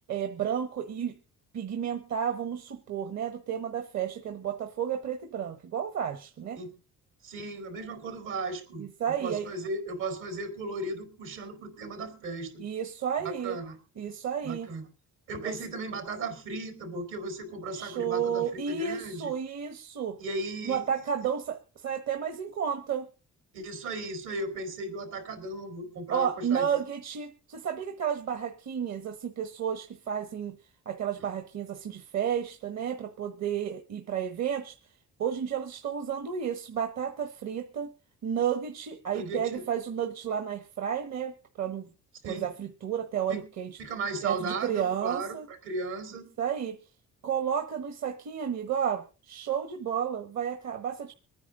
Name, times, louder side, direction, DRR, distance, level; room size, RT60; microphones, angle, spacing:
voice 1, 0.1-1.1 1.5-6.6 8.8-9.5 12.6-13.6 14.0-14.7 15.4-15.6 17.7-20.2 20.6-23.1 26.1-30.6 30.8-34.7 35.2-37.9 38.2-41.3 41.6-41.9 42.2-43.8 44.2-45.5 46.4-46.8 47.2-51.1, right 8 dB, 60° right, 9 dB, 1.3 m, -32 dB
voice 2, 7.2-12.6 13.2-13.8 14.4-14.9 15.3-19.3 20.2-20.9 23.5-26.7 39.1-39.6 42.2-42.5 43.3-43.4 43.8-46.3, right 2 dB, 85° right, 6 dB, 4.3 m, -36 dB
25.5 x 9.6 x 3.8 m, 0.33 s
cardioid pair, 90°, 30 cm